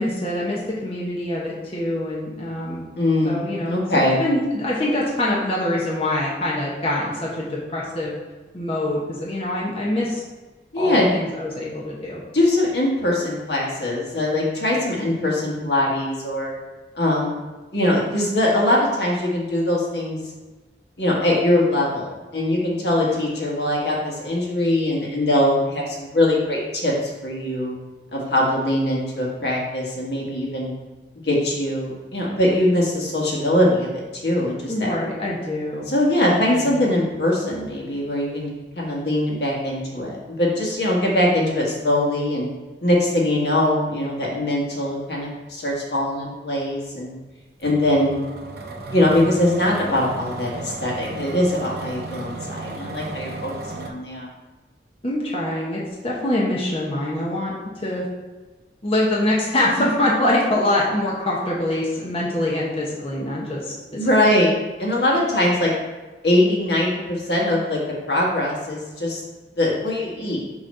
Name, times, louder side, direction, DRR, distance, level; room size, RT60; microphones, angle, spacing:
voice 1, 0.0-2.9 3.2-3.8 4.2-8.2 8.5-10.2 10.7-12.2 14.9-15.4 22.9-23.2 34.7-35.9 36.3-36.8 55.0-57.5 57.8-58.1 58.8-64.3 65.4-65.6, left 1 dB, 30° left, -5 dB, 0.9 m, -24 dB
voice 2, 3.0-4.2 10.7-11.1 12.3-16.5 16.9-17.4 17.7-20.2 21.0-26.9 27.2-27.7 28.1-30.7 31.2-33.9 34.2-34.9 35.9-38.5 38.7-42.5 42.8-47.1 47.6-48.2 48.9-54.3 64.0-65.7 66.2-67.8 68.1-69.2 69.6-70.4, left 1 dB, 75° left, -3 dB, 1.6 m, -22 dB
sound 1, 47.6-53.9, right 2 dB, 60° right, 0.7 m, -34 dB
6.3 x 3.1 x 5.4 m, 1.2 s
head